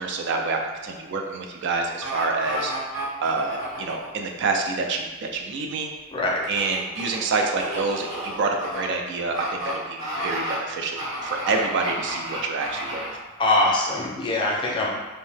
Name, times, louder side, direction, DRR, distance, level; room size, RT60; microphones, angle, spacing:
voice 1, 0.0-2.7 3.2-5.9 6.5-13.1, right 3 dB, 60° right, 2 dB, 0.4 m, -27 dB
sound 1, 2.0-4.1 6.4-8.8 9.3-9.7 10.0-10.6 11.0-13.2 13.7-13.8, equal, 80° right, 1.0 m, -32 dB
voice 2, 6.1-6.4 13.4-14.9, left 2 dB, 25° left, -3 dB, 0.5 m, -22 dB
2.7 x 2.1 x 3.2 m, 1.2 s
head